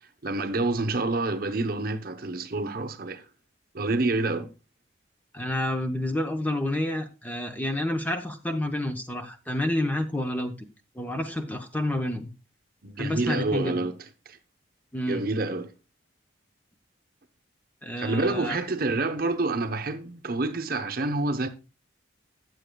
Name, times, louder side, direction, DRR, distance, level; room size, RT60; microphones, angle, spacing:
voice 1, 0.2-3.2 3.7-4.5 12.8-14.0 14.3-14.4 15.1-15.7 18.0-21.5, right 2 dB, 50° right, 0.8 m, -27 dB
voice 2, 5.3-10.7 11.0-12.3 13.0-13.8 14.9-15.2 17.8-18.6, left 1 dB, 10° left, 0.7 m, -29 dB
14.0 x 7.8 x 2.2 m
head